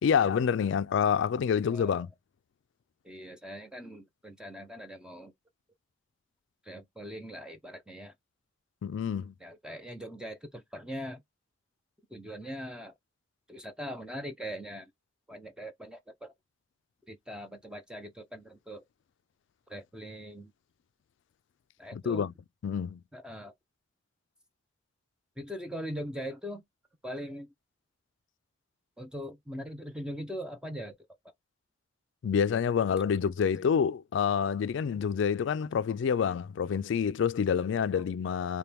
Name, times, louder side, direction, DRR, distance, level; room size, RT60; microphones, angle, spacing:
voice 1, 0.0-2.1 8.8-9.3 21.9-22.3 22.6-23.0 32.2-38.6, left 7 dB, 70° left, 0.3 m, -27 dB
voice 2, 1.7-2.0 3.0-5.3 6.7-8.1 9.4-11.2 12.1-12.9 13.5-14.9 15.3-16.3 17.1-18.8 19.7-20.5 21.8-22.3 23.1-23.5 25.4-26.6 27.0-27.5 29.0-30.9, equal, 5° right, 0.6 m, -41 dB
4.3 x 2.2 x 3.4 m
head